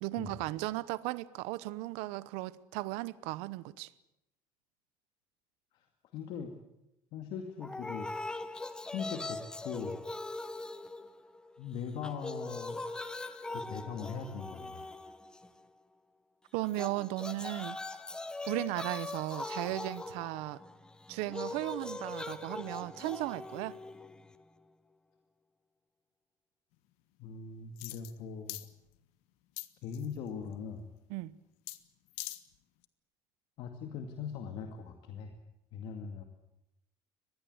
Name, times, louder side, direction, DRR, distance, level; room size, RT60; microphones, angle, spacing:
voice 1, 0.0-3.9 16.5-17.8 18.5-20.6 21.1-23.8 31.1-31.3, right 18 dB, 85° right, 0.9 m, -36 dB
voice 2, 6.1-6.5 7.1-8.1 8.8-10.0 11.6-12.8 13.5-14.9 27.2-28.6 29.8-30.9 33.6-35.3 35.7-36.2, left 6 dB, 55° left, 2.2 m, -40 dB
sound 1, 7.6-11.6 11.9-15.7 16.6-24.6, left 2 dB, 10° left, 1.0 m, -41 dB
sound 2, 27.8-28.2 28.5-28.7 29.6-30.2 31.7-31.8 32.1-32.4 32.8-32.9, left 19 dB, 85° left, 1.4 m, -42 dB
24.5 x 20.0 x 8.0 m
cardioid pair, 165°, 10 cm